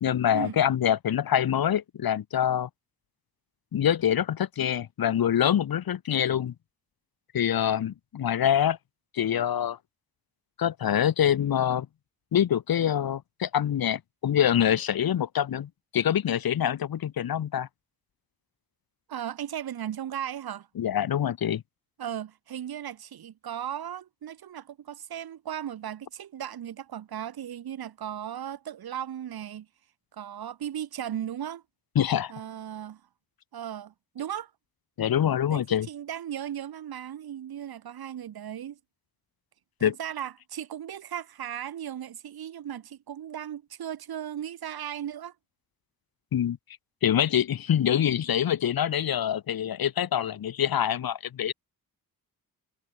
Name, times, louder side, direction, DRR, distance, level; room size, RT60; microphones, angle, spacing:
voice 1, 0.0-2.7 3.7-6.5 7.3-8.8 9.1-9.8 10.6-11.9 12.3-17.7 20.8-21.6 31.9-32.3 35.0-35.9 39.8-39.9 46.3-46.6 47.0-51.5, left 10 dB, 75° left, 2.7 m, -25 dB
voice 2, 19.1-20.7 22.0-29.7 30.1-31.6 32.3-33.0 33.5-34.5 35.5-38.8 39.8-45.3, right 10 dB, 85° right, 5.2 m, -36 dB
wide cardioid pair, 130°, 36 cm